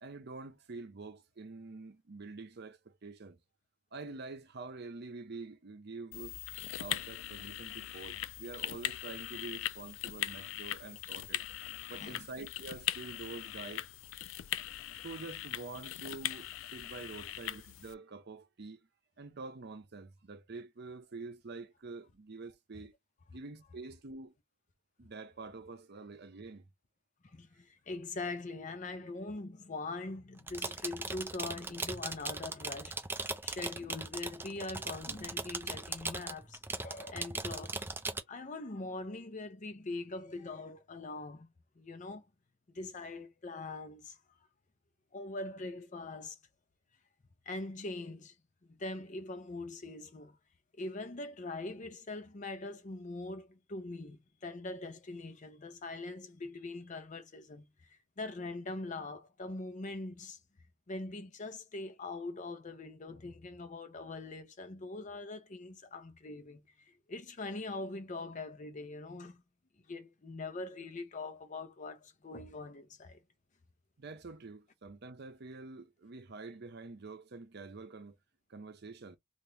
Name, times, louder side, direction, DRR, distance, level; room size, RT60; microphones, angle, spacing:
voice 1, 0.0-3.4 3.9-6.4 6.8-11.4 11.9-13.9 15.0-18.9 19.2-22.9 23.3-24.3 25.0-26.7 74.0-78.2 78.5-79.2, right 3 dB, 55° right, 0.7 m, -47 dB
sound 1, 6.1-17.9, left 12 dB, 75° left, 0.3 m, -40 dB
voice 2, 11.9-12.3 27.3-33.0 33.4-37.8 38.3-41.5 41.8-42.3 42.7-44.2 45.1-46.4 47.5-48.3 48.7-50.4 50.8-60.4 60.9-69.4 69.9-73.2, left 2 dB, 40° left, 0.6 m, -42 dB
sound 2, 30.4-38.2, right 3 dB, 10° right, 0.4 m, -39 dB
2.9 x 2.5 x 3.3 m
head